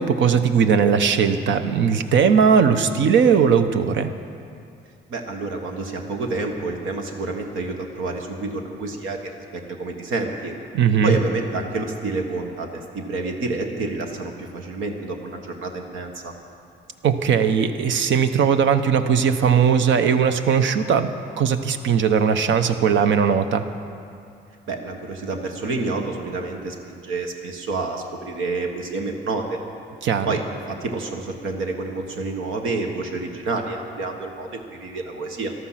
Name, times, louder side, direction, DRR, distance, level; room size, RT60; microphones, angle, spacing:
voice 1, 0.0-4.1 10.7-11.2 17.0-21.1 21.4-23.6 30.0-30.3, right 7 dB, 70° right, 9 dB, 0.9 m, -18 dB
voice 2, 5.1-9.2 9.5-10.5 11.0-16.3 24.7-29.6 30.2-30.4 30.7-35.5, right 3 dB, 90° right, 3 dB, 1.5 m, -28 dB
14.0 x 12.5 x 5.8 m, 2.5 s
cardioid pair, 90°, 20 cm